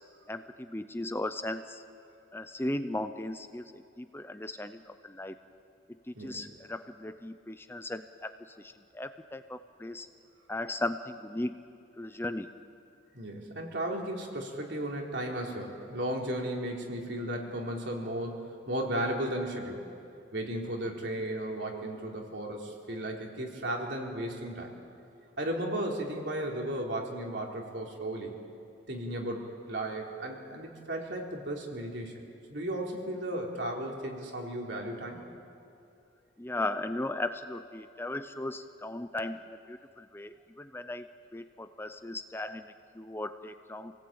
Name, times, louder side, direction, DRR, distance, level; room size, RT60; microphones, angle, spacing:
voice 1, 0.3-1.8 2.3-5.4 6.1-10.1 10.5-11.6 12.0-12.5 36.4-43.9, left 1 dB, 10° left, 9 dB, 0.6 m, -37 dB
voice 2, 6.2-6.5 13.1-18.4 18.7-19.9 20.3-24.7 25.4-28.4 28.9-32.1 32.5-35.2, right 1 dB, 70° right, 0 dB, 3.5 m, -35 dB
27.5 x 18.0 x 8.8 m, 2.5 s
head